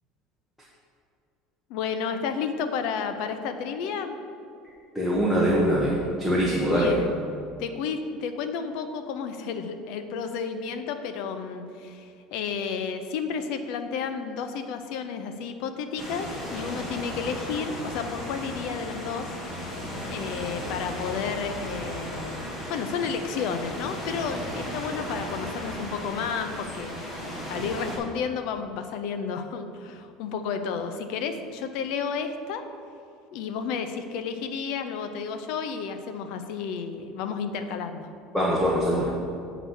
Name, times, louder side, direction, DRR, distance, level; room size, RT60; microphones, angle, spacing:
voice 1, 1.7-4.2 6.7-7.1 7.6-19.3 20.1-22.4 22.7-26.9 27.5-32.6 33.3-38.1, left 6 dB, 65° left, 8 dB, 0.6 m, -32 dB
voice 2, 4.9-6.9 38.3-39.2, equal, 5° left, -6 dB, 1.1 m, -23 dB
sound 1, 16.0-28.0, equal, 25° left, 1.8 m, -35 dB
8.1 x 4.0 x 6.2 m, 2.5 s
cardioid pair, 150°, 0 cm